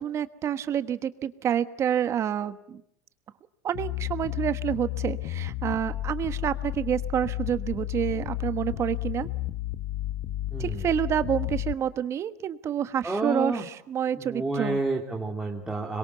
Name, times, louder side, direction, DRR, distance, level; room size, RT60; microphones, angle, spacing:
voice 1, 0.0-2.8 3.6-9.3 10.6-14.8, right 9 dB, 35° right, 12 dB, 1.2 m, -28 dB
sound 1, 3.7-11.7, left 15 dB, 55° left, 0.9 m, -32 dB
voice 2, 10.5-10.9 13.0-13.6 14.2-16.0, right 2 dB, 10° right, -1 dB, 2.7 m, -30 dB
26.0 x 22.5 x 8.2 m, 0.77 s
supercardioid pair, 120°, 8 cm